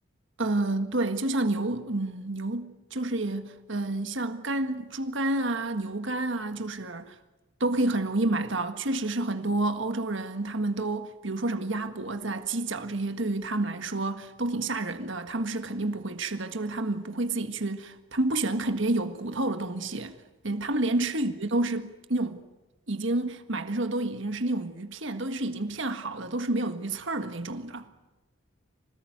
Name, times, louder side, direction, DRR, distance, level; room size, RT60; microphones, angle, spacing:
voice 1, 0.4-7.2 7.6-20.1 20.4-22.4 22.9-27.9, right 2 dB, 60° right, 1.7 m, -29 dB
26.0 x 18.5 x 9.4 m
head